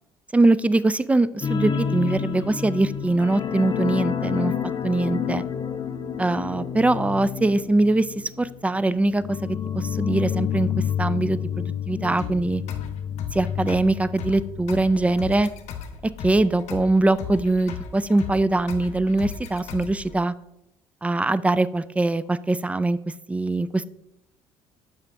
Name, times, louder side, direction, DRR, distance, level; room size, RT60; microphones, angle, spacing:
voice 1, 0.3-4.5 4.8-5.4 6.2-12.6 13.3-15.5 16.2-20.3 21.0-23.0 23.3-23.8, right 2 dB, 10° right, 16 dB, 0.3 m, -22 dB
sound 1, 1.4-14.7 15.0-15.2 15.5-15.6, left 8 dB, 35° left, 0.6 m, -29 dB
sound 2, 12.2-20.2, left 7 dB, 65° left, 0.8 m, -37 dB
6.6 x 5.0 x 3.6 m, 0.84 s
hypercardioid pair, 65°, 13 cm